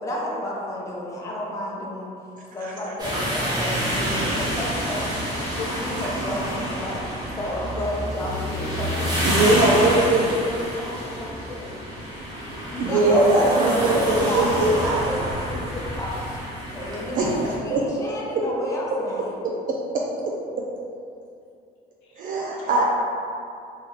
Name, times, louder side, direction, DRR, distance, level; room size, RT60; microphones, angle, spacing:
voice 1, 0.0-2.1 2.5-5.1 5.5-7.0 7.4-9.1 9.6-10.0 12.4-16.2 16.7-19.3, left 1 dB, 20° left, -4 dB, 0.5 m, -31 dB
sound 1, 3.0-17.5, equal, 25° right, 0.9 m, -28 dB
voice 2, 9.2-10.3 12.8-15.0 17.1-17.8 18.3-18.4 19.4-20.3 22.2-22.8, right 2 dB, 55° right, -2 dB, 0.4 m, -21 dB
voice 3, 10.2-11.8 22.0-22.2 22.5-22.7, left 1 dB, 85° left, -5 dB, 0.9 m, -39 dB
3.1 x 2.3 x 3.1 m, 2.5 s
cardioid pair, 110°, 17 cm